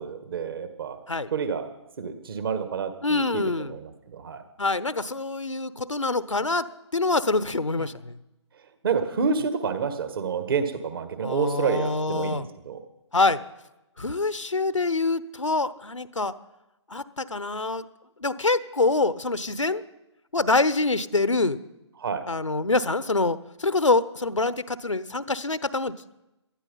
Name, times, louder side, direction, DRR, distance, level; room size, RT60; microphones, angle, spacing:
voice 1, 0.0-1.0 1.3-1.7 2.0-3.4 3.7-4.4 8.8-12.8 22.0-22.2, right 6 dB, 50° right, 9 dB, 1.9 m, -28 dB
voice 2, 3.0-3.8 4.6-6.7 6.9-8.2 11.2-12.5 13.1-13.4 14.0-16.3 16.9-17.8 18.2-19.8 20.3-21.6 22.3-26.2, left 3 dB, 85° left, 15 dB, 0.9 m, -25 dB
18.5 x 13.0 x 5.5 m, 0.94 s
figure-of-eight pair, 140°, 15 cm